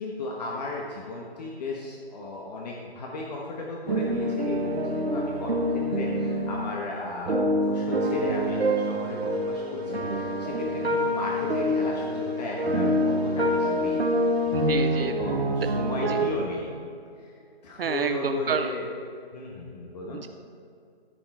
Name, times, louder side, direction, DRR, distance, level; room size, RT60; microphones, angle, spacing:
voice 1, 0.0-14.0 15.0-16.7 17.2-17.3 17.6-18.9 19.3-20.2, left 2 dB, 40° left, -2 dB, 1.3 m, -35 dB
sound 1, 3.9-6.6 7.3-16.3, equal, 80° right, 1.6 m, -26 dB
voice 2, 14.5-15.2 16.1-16.2 17.8-18.7 20.1-20.3, right 7 dB, 65° right, 9 dB, 0.5 m, -29 dB
13.5 x 6.0 x 4.3 m, 2.5 s
figure-of-eight pair, 145°, 31 cm